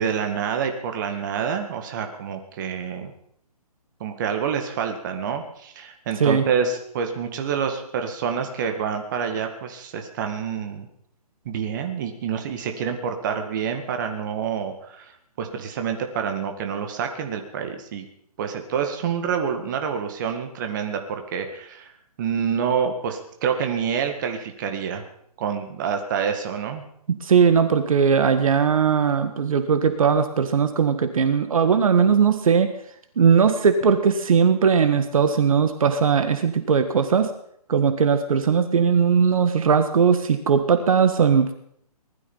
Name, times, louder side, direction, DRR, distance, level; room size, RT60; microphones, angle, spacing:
voice 1, 0.0-3.1 4.0-10.9 11.5-15.1 15.4-18.1 18.4-21.9 22.2-25.0 25.4-26.8, right 7 dB, 30° right, 5 dB, 2.0 m, -27 dB
voice 2, 27.1-32.7 33.2-37.3 37.7-41.5, right 6 dB, 60° right, 9 dB, 1.6 m, -19 dB
20.0 x 13.0 x 5.6 m, 0.70 s
hypercardioid pair, 165°, 20 cm